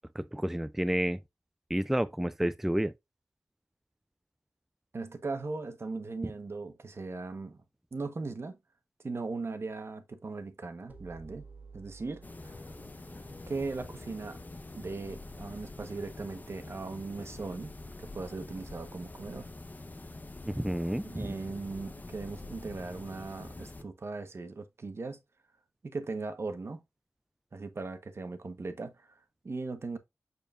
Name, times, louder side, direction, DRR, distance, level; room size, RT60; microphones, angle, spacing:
voice 1, 0.2-1.2 1.7-2.9 20.5-21.3, equal, 5° right, 0.3 m, -30 dB
voice 2, 4.9-7.6 7.9-8.6 9.0-11.4 11.7-12.6 13.5-14.4 14.7-17.7 18.0-19.5 21.0-25.2 25.8-26.8 27.5-30.0, right 3 dB, 55° right, 1.1 m, -38 dB
sound 1, 10.9-15.6, right 2 dB, 35° right, 1.7 m, -53 dB
sound 2, 12.2-23.8, left 2 dB, 35° left, 0.9 m, -46 dB
7.0 x 6.6 x 2.5 m
wide cardioid pair, 95°, 5 cm